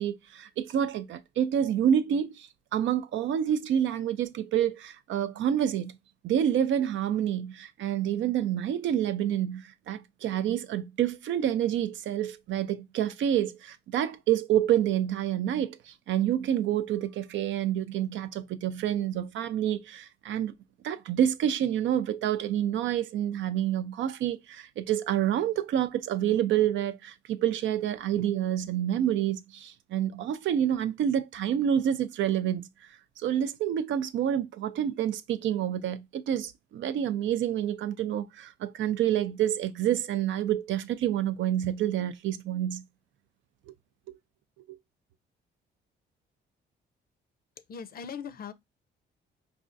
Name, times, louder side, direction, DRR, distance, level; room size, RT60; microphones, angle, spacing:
voice 1, 0.0-5.9 6.2-20.5 20.8-32.7 33.2-42.8 43.7-43.8 44.1-44.2 44.7-44.8, right 10 dB, 70° right, 0.5 m, -28 dB
voice 2, 47.7-48.5, left 7 dB, 50° left, 0.5 m, -39 dB
4.9 x 2.4 x 2.5 m
cardioid pair, 90°, 20 cm